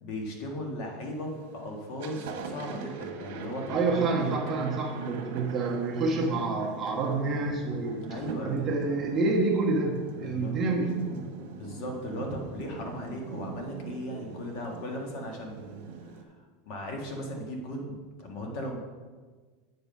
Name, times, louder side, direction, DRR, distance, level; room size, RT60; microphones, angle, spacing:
voice 1, 0.0-4.4 8.1-8.6 10.2-10.6 11.5-16.4 16.6-18.8, left 1 dB, 50° left, 1 dB, 1.6 m, -37 dB
Thunder, 1.0-1.4 1.8-16.2, right 5 dB, 65° right, 1.3 m, -41 dB
voice 2, 3.7-8.0 8.4-11.1, right 3 dB, 20° right, -2 dB, 1.3 m, -28 dB
8.5 x 5.5 x 5.4 m, 1.4 s
supercardioid pair, 165°, 0 cm